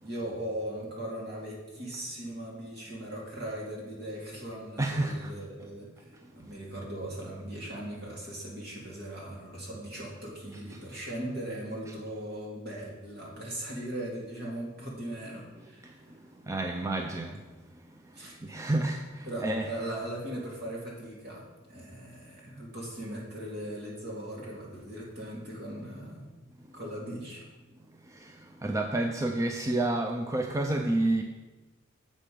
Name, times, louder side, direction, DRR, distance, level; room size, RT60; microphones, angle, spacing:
voice 1, 0.0-15.8 18.1-18.4 19.3-26.2 26.7-27.4, right 1 dB, 55° right, -3 dB, 2.3 m, -39 dB
voice 2, 4.8-5.3 5.6-5.7 10.7-10.8 11.9-12.0 15.8-15.9 16.4-17.4 18.4-19.7 28.1-31.2, right 2 dB, 15° right, 3 dB, 0.4 m, -30 dB
7.3 x 5.9 x 5.0 m, 1.2 s
head